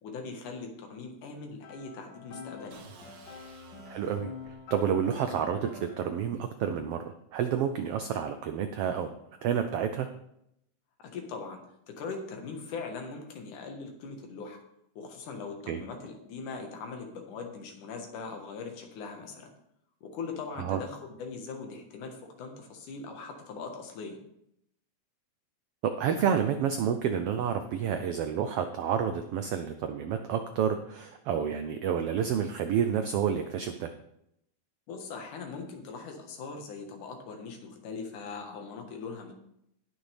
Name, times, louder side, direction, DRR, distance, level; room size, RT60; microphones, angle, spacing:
voice 1, 0.0-2.8 11.0-14.6 15.0-19.5 20.0-24.2 34.9-39.3, left 4 dB, 85° left, 3 dB, 3.0 m, -41 dB
sound 1, 1.5-6.0, left 4 dB, 45° left, 2.1 m, -46 dB
sound 2, 2.7-4.6, right 4 dB, 65° right, 2.4 m, -53 dB
voice 2, 3.9-9.1 9.4-10.1 15.7-15.8 20.6-20.8 25.8-33.9, right 8 dB, 90° right, 8 dB, 1.3 m, -29 dB
19.0 x 6.3 x 3.4 m, 0.77 s
omnidirectional pair, 3.5 m